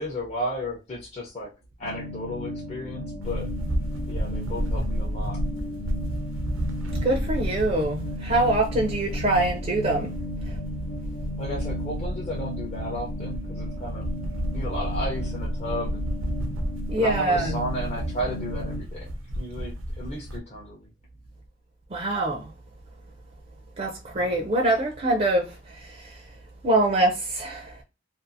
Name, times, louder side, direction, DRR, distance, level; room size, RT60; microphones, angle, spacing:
voice 1, 0.0-1.5 1.8-3.5 4.1-5.4 11.4-14.1 14.5-16.1 17.0-20.9 24.2-24.4, equal, 35° left, 0.6 m, -34 dB
sound 1, 1.8-18.8, left 1 dB, 90° left, 0.8 m, -35 dB
sound 2, 3.2-20.4, equal, 90° right, 0.6 m, -32 dB
voice 2, 7.0-10.1 10.5-10.6 16.9-17.5 21.9-22.5 23.8-26.2 26.6-27.8, right 2 dB, 35° right, 0.4 m, -24 dB
2.6 x 2.3 x 2.5 m
head